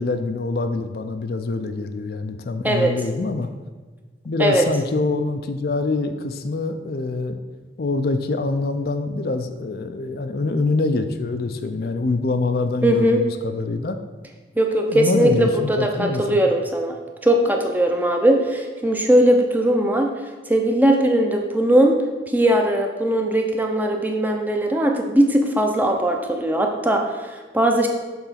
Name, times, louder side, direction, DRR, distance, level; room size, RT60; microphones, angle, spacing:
voice 1, 0.0-3.5 4.2-7.4 7.8-14.0 14.9-16.4, left 3 dB, 55° left, 8 dB, 0.4 m, -25 dB
voice 2, 12.8-13.2 14.6-17.0 17.2-20.1 20.5-22.0 22.3-27.9, right 1 dB, 10° right, 2 dB, 0.6 m, -19 dB
6.9 x 3.9 x 5.7 m, 1.3 s
head